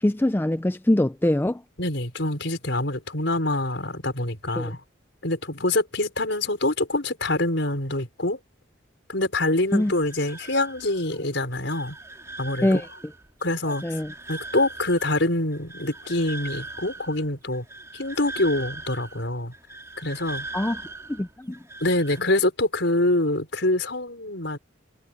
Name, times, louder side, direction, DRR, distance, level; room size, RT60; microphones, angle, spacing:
voice 1, 0.0-1.6 4.6-4.7 9.7-9.9 12.6-12.9 13.8-14.1 20.5-20.8 21.1-21.6, left 1 dB, 10° left, 0.4 m, -23 dB
voice 2, 1.8-4.8 5.2-8.4 9.1-12.0 12.4-12.8 13.4-14.0 14.3-17.6 17.9-19.5 20.0-20.5 21.8-24.6, left 2 dB, 65° left, 5.0 m, -25 dB
sound 1, 9.7-22.2, right 2 dB, 15° right, 3.4 m, -41 dB
head